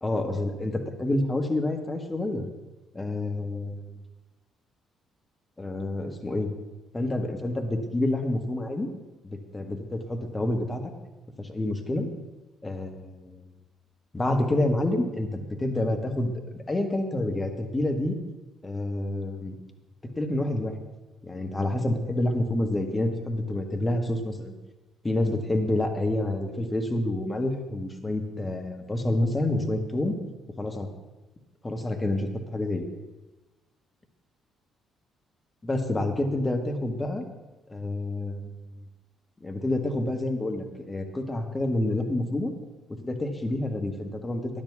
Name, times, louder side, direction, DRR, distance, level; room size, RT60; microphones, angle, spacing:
voice 1, 0.0-2.4 2.9-4.0 5.6-6.5 6.9-8.9 9.2-10.9 11.4-12.1 12.6-13.4 14.1-18.2 18.6-19.6 20.2-20.7 21.2-24.5 25.0-30.2 30.6-30.9 31.6-32.9 35.6-37.2 37.7-38.5 39.4-42.5 43.0-44.6, left 1 dB, 25° left, 4 dB, 1.8 m, -28 dB
10.0 x 7.7 x 6.1 m, 1.1 s
figure-of-eight pair, 45°, 0 cm